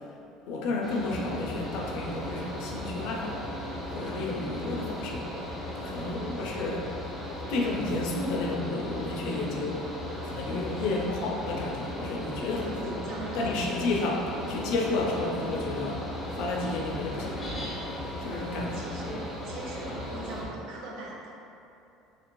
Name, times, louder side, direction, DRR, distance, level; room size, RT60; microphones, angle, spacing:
voice 1, 0.5-3.5 3.9-5.2 5.8-6.9 7.3-9.8 10.2-13.0 13.3-17.7 18.2-18.8, left 2 dB, 65° left, -1 dB, 0.5 m, -31 dB
Mechanical fan, 0.8-20.5, left 1 dB, 5° left, 0.5 m, -37 dB
sound 1, 11.5-19.3, right 1 dB, 45° right, 1.1 m, -49 dB
voice 2, 12.5-13.5 18.3-21.3, right 2 dB, 60° right, -2 dB, 0.5 m, -42 dB
2.8 x 2.5 x 3.0 m, 2.8 s
cardioid pair, 160°, 0 cm